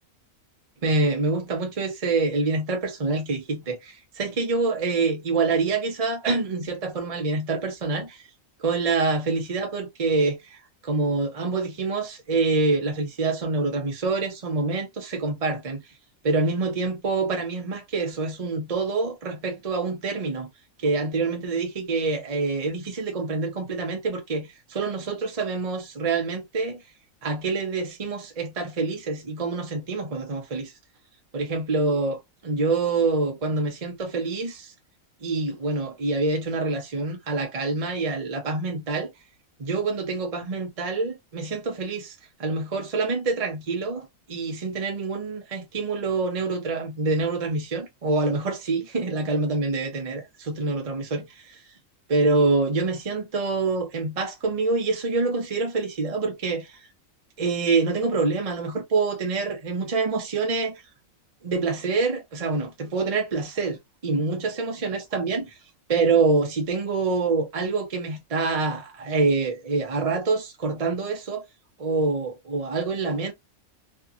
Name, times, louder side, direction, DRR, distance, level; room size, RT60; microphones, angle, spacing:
voice 1, 0.8-8.2 8.6-15.8 16.2-20.5 20.8-26.8 27.2-30.7 31.3-34.7 35.2-39.1 39.6-51.6 52.1-56.8 57.4-60.8 61.4-65.5 65.9-71.5 71.8-73.3, right 3 dB, 35° right, 0.7 m, -26 dB
2.7 x 2.7 x 2.4 m
omnidirectional pair, 1.4 m